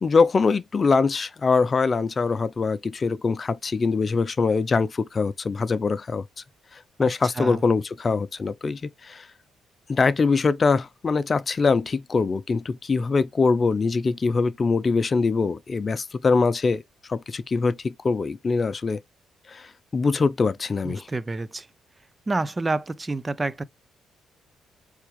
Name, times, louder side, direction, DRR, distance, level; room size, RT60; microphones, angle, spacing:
voice 1, 0.0-6.2 7.0-9.3 9.9-16.8 17.1-19.0 19.5-21.1, left 4 dB, 35° left, 0.6 m, -23 dB
voice 2, 7.0-7.6 20.8-21.7 22.3-23.6, right 2 dB, 20° right, 0.7 m, -28 dB
8.3 x 3.6 x 3.2 m
cardioid pair, 90°, 0 cm